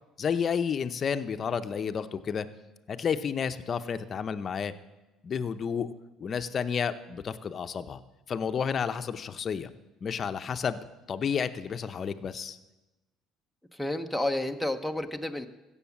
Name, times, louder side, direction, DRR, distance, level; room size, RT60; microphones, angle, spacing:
voice 1, 0.2-2.5 2.9-4.7 5.2-5.9 6.2-8.0 8.3-9.7 10.0-10.8 11.1-12.6, left 7 dB, 45° left, 10 dB, 0.8 m, -31 dB
voice 2, 13.7-15.5, left 1 dB, ahead, 4 dB, 0.8 m, -30 dB
16.0 x 7.1 x 7.2 m, 1.1 s
cardioid pair, 95°, 0 cm